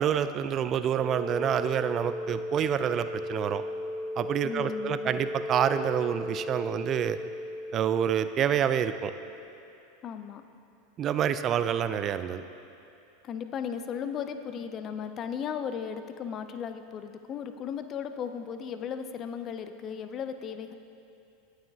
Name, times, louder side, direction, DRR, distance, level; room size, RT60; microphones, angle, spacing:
voice 1, 0.0-3.6 4.2-7.2 7.7-9.1 11.0-12.4, right 9 dB, 35° right, 11 dB, 0.3 m, -27 dB
sound 1, 0.9-9.4, left 1 dB, 55° right, 1.0 m, -36 dB
voice 2, 4.4-5.1 10.0-10.4 13.2-20.7, left 7 dB, 35° left, 9 dB, 0.4 m, -36 dB
9.2 x 8.9 x 2.7 m, 2.7 s
supercardioid pair, 120°, 0 cm